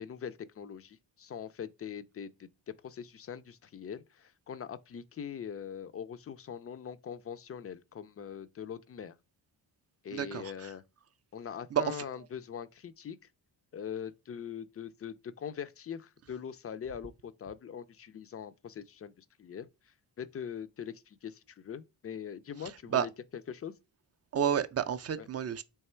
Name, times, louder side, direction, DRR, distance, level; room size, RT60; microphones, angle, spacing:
voice 1, 0.0-9.2 10.0-10.8 11.3-13.2 13.7-23.8 25.2-25.3, left 8 dB, 30° left, 0.4 m, -42 dB
voice 2, 10.1-10.7 11.7-12.0 22.9-23.1 24.3-25.6, right 9 dB, 35° right, 0.4 m, -30 dB
3.4 x 2.9 x 4.3 m
cardioid pair, 55°, 47 cm